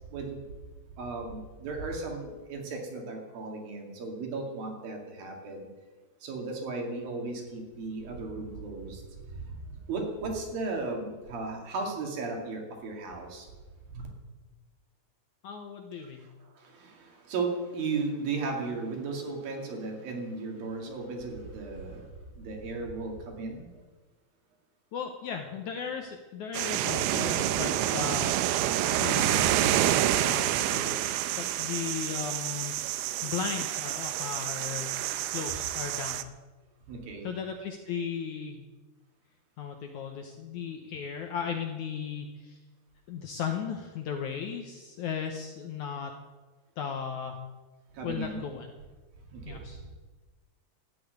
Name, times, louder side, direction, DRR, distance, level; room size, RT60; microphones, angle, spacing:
voice 1, 0.1-0.4 1.0-5.7 6.2-9.0 9.3-9.4 9.9-13.5 14.0-14.1 16.6-22.1 22.4-23.7 36.9-37.3 48.0-48.4 49.3-49.6, right 3 dB, 65° right, 2 dB, 4.0 m, -35 dB
voice 2, 15.4-16.3 24.9-28.4 28.9-29.7 30.2-32.8 33.2-34.9 35.3-36.3 37.2-38.7 39.6-42.6 43.1-46.1 46.8-47.4 48.0-48.7 49.5-49.8, left 7 dB, 70° left, 4 dB, 1.9 m, -36 dB
sound 1, 26.5-36.2, right 13 dB, 90° right, 2.6 m, -28 dB
13.5 x 8.6 x 9.5 m, 1.3 s
omnidirectional pair, 4.5 m